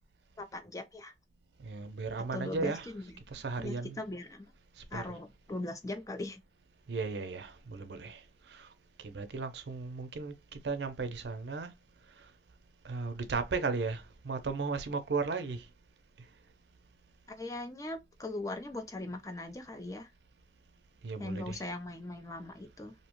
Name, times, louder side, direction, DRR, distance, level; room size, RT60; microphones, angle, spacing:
voice 1, 0.4-1.1 2.3-3.0 3.6-4.5 4.9-6.4 17.3-20.1 21.2-22.9, left 2 dB, 20° left, 0.5 m, -40 dB
voice 2, 1.6-2.9 3.3-4.0 4.9-5.0 6.9-8.2 8.5-8.7 9.0-11.7 12.8-15.6 21.0-21.6, right 4 dB, 70° right, 0.5 m, -35 dB
2.7 x 2.1 x 2.9 m
head